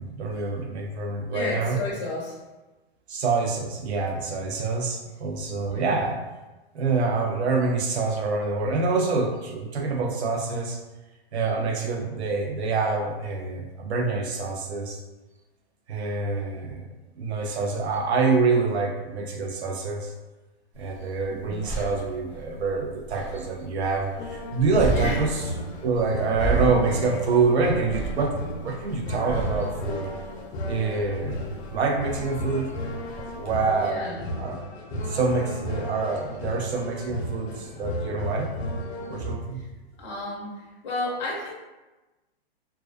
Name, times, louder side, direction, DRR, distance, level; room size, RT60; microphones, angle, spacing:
voice 1, 0.0-1.8 3.1-6.2 6.7-10.8 11.3-15.0 15.9-16.9 17.2-20.1 20.8-25.3 25.8-30.1 30.7-31.4 31.7-32.7 33.4-34.1 34.4-38.5 39.1-39.6, right 4 dB, 80° right, 1 dB, 0.6 m, -26 dB
voice 2, 1.3-2.4 5.6-5.9 21.3-21.6 24.9-25.2 33.8-34.3 39.6-39.7 40.0-41.5, left 2 dB, 30° left, -5 dB, 0.5 m, -32 dB
sound 1, 20.7-33.8, right 3 dB, 30° right, 0.7 m, -34 dB
sound 2, 24.2-39.4, equal, 80° left, 0.5 m, -34 dB
2.3 x 2.3 x 2.3 m, 1.1 s
hypercardioid pair, 165°, 32 cm